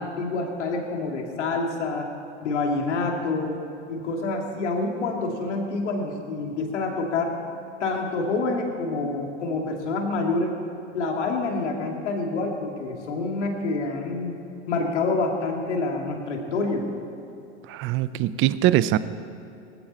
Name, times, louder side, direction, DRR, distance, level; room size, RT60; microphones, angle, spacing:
voice 1, 0.0-2.1 2.4-3.6 3.9-7.3 7.8-10.5 10.9-14.4 14.7-16.9, left 3 dB, 80° left, 1 dB, 2.7 m, -27 dB
voice 2, 17.8-19.0, right 14 dB, 35° right, 16 dB, 0.6 m, -21 dB
18.5 x 16.0 x 4.4 m, 2.9 s
hypercardioid pair, 105°, 35 cm